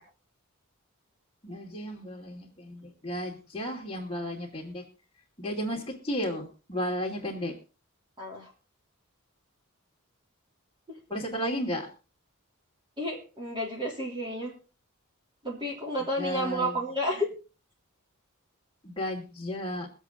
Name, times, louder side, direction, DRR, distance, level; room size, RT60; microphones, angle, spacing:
voice 1, 1.4-4.8 5.4-7.6 11.1-11.9 16.2-16.8 18.8-19.9, equal, 20° left, 2.8 m, -33 dB
voice 2, 8.2-8.5 10.9-11.0 13.0-14.5 15.4-17.3, equal, 20° right, 3.3 m, -31 dB
23.5 x 8.1 x 3.8 m
head